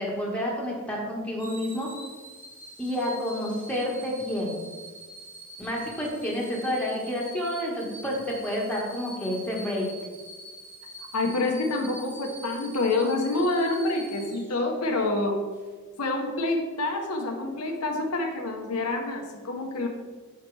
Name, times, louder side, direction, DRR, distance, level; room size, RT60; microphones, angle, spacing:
voice 1, 0.0-1.9 2.8-4.6 5.6-9.9, left 1 dB, 5° left, -4 dB, 1.5 m, -29 dB
sound 1, 1.4-15.0 15.5-15.7, right 1 dB, 10° right, 1.1 m, -45 dB
voice 2, 11.1-15.4 16.0-19.9, left 2 dB, 85° left, 2 dB, 1.0 m, -27 dB
7.5 x 5.7 x 3.3 m, 1.4 s
head